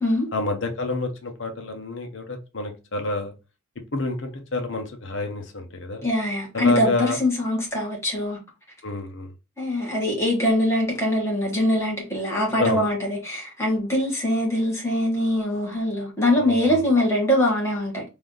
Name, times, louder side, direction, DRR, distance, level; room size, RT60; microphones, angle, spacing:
voice 1, 0.3-3.3 3.9-6.0 6.5-7.2 8.8-9.3 12.5-12.8 16.4-16.8, left 2 dB, 65° left, 0.8 m, -28 dB
voice 2, 6.0-8.4 9.6-18.0, left 1 dB, 15° left, 1.4 m, -23 dB
3.3 x 2.6 x 3.7 m
head